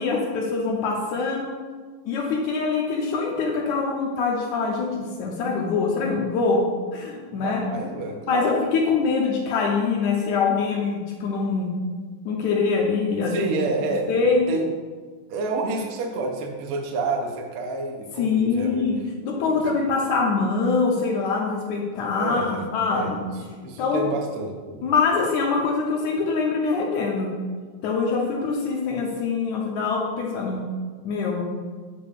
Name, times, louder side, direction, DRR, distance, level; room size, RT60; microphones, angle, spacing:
voice 1, 0.0-1.5 2.1-6.6 6.9-7.6 8.3-11.7 12.3-13.5 13.8-14.5 18.2-23.2 23.8-24.1 24.8-27.3 27.8-30.6 31.0-31.4, left 4 dB, 80° left, -1 dB, 2.0 m, -24 dB
voice 2, 7.3-8.6 13.3-14.2 14.5-14.7 15.3-18.8 19.5-19.6 22.2-22.6 22.9-23.2 23.6-24.9, right 3 dB, 90° right, 2 dB, 1.2 m, -29 dB
6.8 x 6.6 x 2.4 m, 1.5 s
omnidirectional pair, 3.5 m